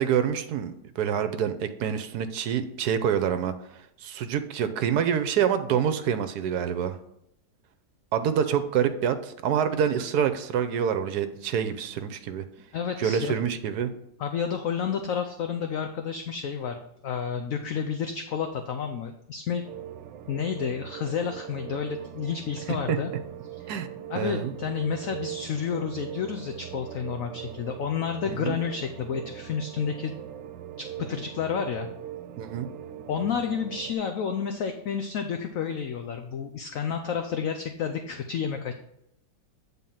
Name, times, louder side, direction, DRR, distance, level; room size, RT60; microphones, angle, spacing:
voice 1, 0.0-3.5 4.0-7.0 8.1-12.4 13.0-13.9 22.9-23.0 23.7-23.9 24.1-24.5 28.3-28.5 32.4-32.7, right 8 dB, 70° right, 10 dB, 1.1 m, -26 dB
voice 2, 12.7-13.3 14.2-19.6 20.3-23.1 23.5-23.8 24.1-30.1 30.8-31.9 33.1-38.7, left 7 dB, 65° left, 6 dB, 0.8 m, -30 dB
sound 1, 19.6-33.9, right 11 dB, 85° right, 1.3 m, -40 dB
9.1 x 3.9 x 5.6 m, 0.77 s
omnidirectional pair, 1.9 m